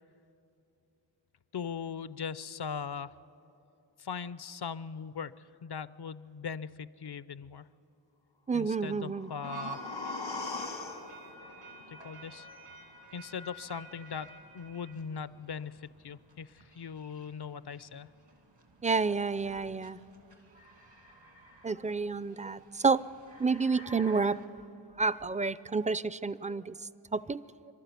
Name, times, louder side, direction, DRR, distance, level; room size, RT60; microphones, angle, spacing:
voice 1, 1.5-3.1 4.0-7.7 8.5-9.8 11.9-12.5 13.1-18.1, left 6 dB, 60° left, 17 dB, 0.5 m, -40 dB
voice 2, 8.5-9.3 18.8-20.0 21.6-23.0 23.4-24.4 25.0-26.7 27.1-27.4, right 4 dB, 20° right, 18 dB, 0.4 m, -29 dB
sound 1, 8.9-12.9 13.2-13.3, left 3 dB, 85° left, 1.5 m, -41 dB
sound 2, 9.4-24.5, right 3 dB, 75° right, 2.3 m, -51 dB
27.0 x 12.0 x 8.2 m, 2.9 s
wide cardioid pair, 50°, 44 cm